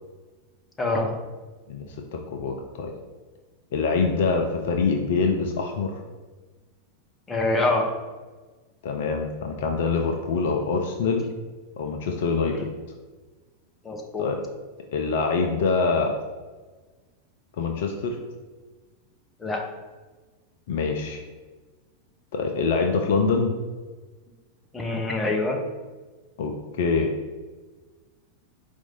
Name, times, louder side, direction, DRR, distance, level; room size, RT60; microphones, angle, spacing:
voice 1, 0.8-1.1 7.3-7.9 12.5-12.6 13.8-14.2 19.4-19.6 24.7-25.6, left 2 dB, 15° left, 1 dB, 0.7 m, -25 dB
voice 2, 1.7-2.9 3.7-6.0 8.8-11.3 11.8-12.7 14.2-14.4 14.9-16.1 17.6-18.2 20.7-21.2 22.3-23.5 26.4-27.1, left 4 dB, 55° left, 3 dB, 0.4 m, -25 dB
4.6 x 2.6 x 3.9 m, 1.3 s
figure-of-eight pair, 90°, 0 cm